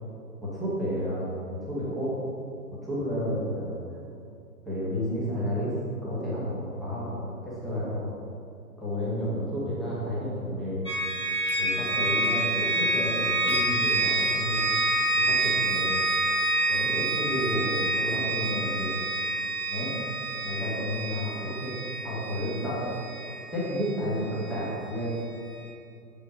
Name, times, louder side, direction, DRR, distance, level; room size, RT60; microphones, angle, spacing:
voice 1, 0.4-2.1 2.7-3.7 4.7-5.7 6.0-8.1 8.8-10.8 11.6-14.7 15.1-16.0 16.7-19.0 19.7-19.9 20.4-21.7 22.0-22.8 23.5-25.1, equal, ahead, -9 dB, 0.8 m, -31 dB
sound 1, 10.9-24.7, right 1 dB, 20° left, 0.4 m, -28 dB
7.0 x 5.1 x 4.9 m, 2.5 s
figure-of-eight pair, 135°, 47 cm